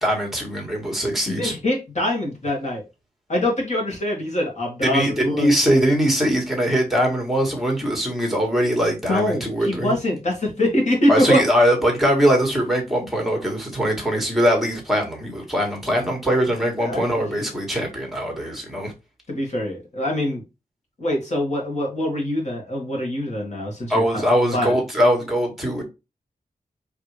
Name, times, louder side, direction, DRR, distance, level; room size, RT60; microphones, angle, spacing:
voice 1, 0.0-1.6 4.8-9.9 11.1-18.9 23.9-25.8, equal, ahead, 1.7 m, -21 dB
voice 2, 1.3-2.8 3.3-5.5 9.0-11.4 16.8-17.5 19.3-20.4 21.0-24.2 24.5-24.7, left 1 dB, 50° left, 2.1 m, -24 dB
4.6 x 3.4 x 3.3 m
wide cardioid pair, 120°, 15 cm